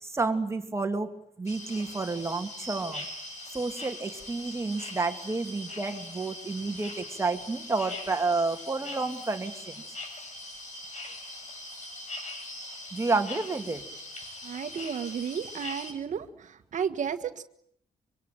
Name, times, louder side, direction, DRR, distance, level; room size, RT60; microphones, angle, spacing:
voice 1, 0.0-3.1 3.5-9.7 12.9-13.8, right 3 dB, 20° right, 5 dB, 2.3 m, -30 dB
sound 1, 1.5-15.9, left 1 dB, 55° left, 7.4 m, -41 dB
voice 2, 14.4-16.3 16.7-17.4, right 7 dB, 60° right, 8 dB, 1.6 m, -32 dB
25.0 x 25.0 x 9.1 m, 0.71 s
cardioid pair, 135°, 14 cm